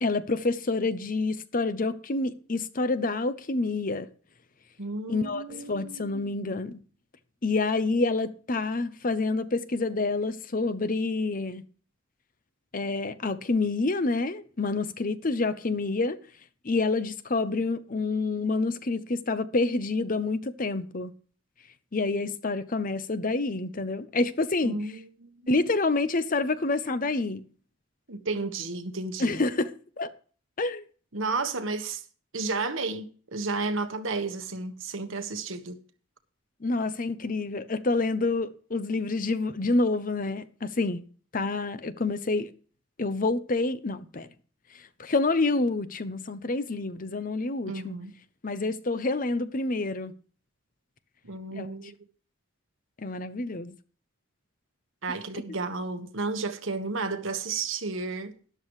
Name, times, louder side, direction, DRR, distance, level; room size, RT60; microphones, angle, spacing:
voice 1, 0.0-4.1 5.1-6.8 7.4-11.6 12.7-16.2 16.6-21.1 21.9-24.9 25.5-27.5 29.2-30.1 30.6-30.8 36.6-41.0 41.3-42.5 43.0-44.3 45.0-48.0 48.4-50.1 51.5-51.7 53.0-53.7, left 3 dB, 40° left, 0.8 m, -28 dB
voice 2, 4.8-6.6 24.6-25.6 28.1-29.4 31.1-32.0 32.3-35.8 47.7-48.1 51.2-51.9 55.0-58.3, right 3 dB, 75° right, 1.4 m, -32 dB
13.0 x 11.0 x 3.2 m
head